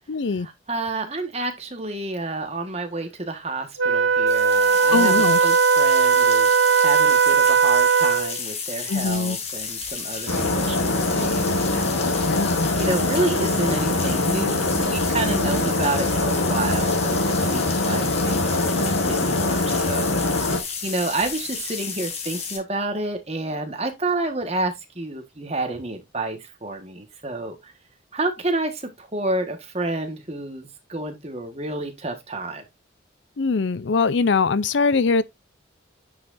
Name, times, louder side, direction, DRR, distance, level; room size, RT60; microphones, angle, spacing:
voice 1, 0.1-0.5 4.9-5.4 8.9-9.4 12.3-12.7 33.4-35.2, left 4 dB, 65° left, 0.5 m, -22 dB
voice 2, 0.7-5.1 5.4-11.9 12.8-27.7 28.1-32.6, right 2 dB, 30° right, 1.5 m, -29 dB
Wind instrument woodwind instrument, 3.8-8.4, right 6 dB, 65° right, 0.7 m, -18 dB
sound 1, 4.3-22.6, left 5 dB, 30° left, 1.7 m, -32 dB
sound 2, 10.3-20.6, left 2 dB, 90° left, 1.2 m, -23 dB
9.6 x 5.7 x 2.6 m
head